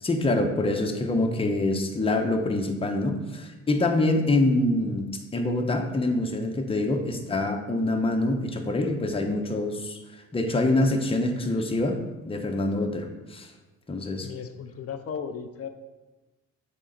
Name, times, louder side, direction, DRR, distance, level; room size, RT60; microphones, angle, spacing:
voice 1, 0.0-5.0 5.3-12.0 12.2-13.5 13.9-14.3, left 2 dB, 20° left, 3 dB, 0.8 m, -25 dB
voice 2, 14.2-15.7, left 7 dB, 50° left, 8 dB, 0.6 m, -35 dB
7.4 x 3.8 x 3.9 m, 1.1 s
cardioid pair, 90°, 30 cm